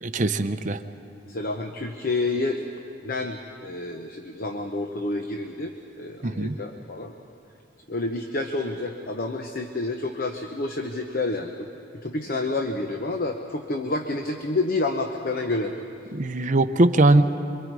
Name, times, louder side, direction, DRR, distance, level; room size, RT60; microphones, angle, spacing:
voice 1, 0.0-0.8 6.2-6.6 16.1-17.2, right 2 dB, 40° right, 7 dB, 0.7 m, -20 dB
voice 2, 1.3-2.7 3.0-7.1 7.9-11.7 12.0-15.7, left 2 dB, 50° left, 4 dB, 0.9 m, -29 dB
27.5 x 24.0 x 4.8 m, 2.7 s
head